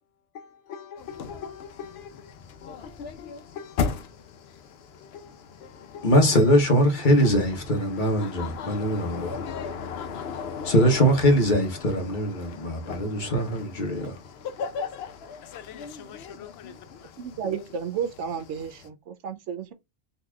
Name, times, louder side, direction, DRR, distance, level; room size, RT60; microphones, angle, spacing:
voice 1, 0.3-4.1 4.9-5.3 5.6-6.1 10.6-10.7 15.4-17.1, left 7 dB, 90° left, 0.9 m, -44 dB
sound 1, 1.0-18.9, left 6 dB, 65° left, 0.8 m, -37 dB
voice 2, 6.0-9.3 10.6-14.2, equal, 45° left, 1.1 m, -22 dB
voice 3, 17.2-19.7, right 7 dB, 80° right, 1.0 m, -32 dB
4.0 x 3.0 x 2.3 m
omnidirectional pair, 1.2 m